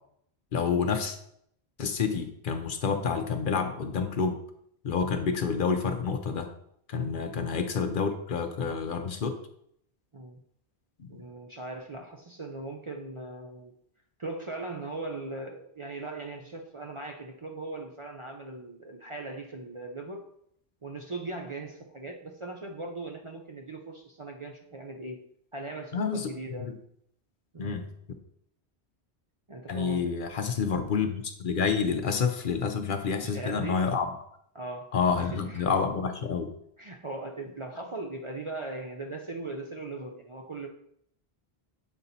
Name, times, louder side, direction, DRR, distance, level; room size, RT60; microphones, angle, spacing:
voice 1, 0.5-1.2 1.8-4.4 4.8-6.5 6.9-9.4 11.0-11.2 25.9-26.3 26.6-26.7 27.6-27.9 29.7-34.1 34.9-36.5, left 5 dB, 60° left, 7 dB, 0.7 m, -28 dB
voice 2, 11.1-13.7 14.2-20.3 20.8-25.2 25.5-26.7 27.5-27.8 29.5-30.2 33.2-33.9 34.5-35.7 36.8-40.7, right 2 dB, 40° right, 1 dB, 0.5 m, -39 dB
7.0 x 4.2 x 4.0 m, 0.71 s
omnidirectional pair, 1.1 m